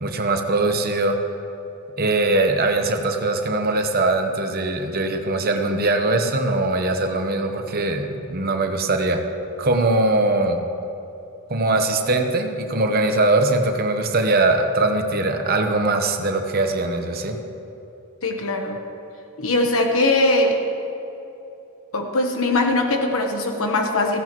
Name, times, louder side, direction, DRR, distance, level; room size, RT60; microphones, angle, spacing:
voice 1, 0.0-1.2 2.0-9.2 9.6-10.6 11.5-17.4, right 2 dB, 40° right, 5 dB, 1.0 m, -21 dB
voice 2, 18.2-18.8 19.4-20.6 21.9-24.2, left 2 dB, 70° left, 3 dB, 1.1 m, -21 dB
17.0 x 15.5 x 3.1 m, 2.9 s
head